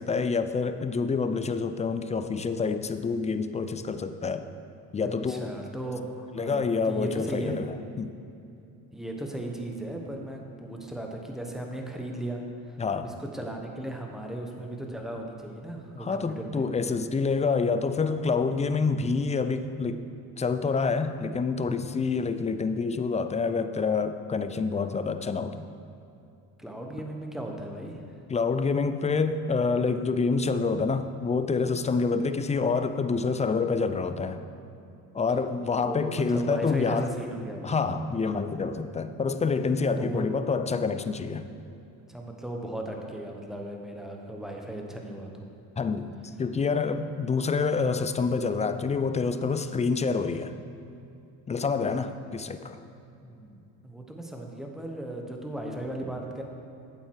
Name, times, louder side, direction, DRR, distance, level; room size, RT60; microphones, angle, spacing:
voice 1, 0.0-4.5 4.9-5.5 6.4-8.1 12.8-13.1 16.0-20.0 20.4-25.7 28.3-34.4 35.1-37.1 37.6-41.5 45.8-50.5 51.5-52.8, left 4 dB, 20° left, 10 dB, 0.4 m, -27 dB
voice 2, 5.0-7.7 8.9-16.6 26.6-28.1 35.8-37.7 40.0-40.2 42.1-45.5 53.2-56.4, right 1 dB, ahead, 1 dB, 1.2 m, -37 dB
8.3 x 7.6 x 4.7 m, 2.7 s
cardioid pair, 95°, 37 cm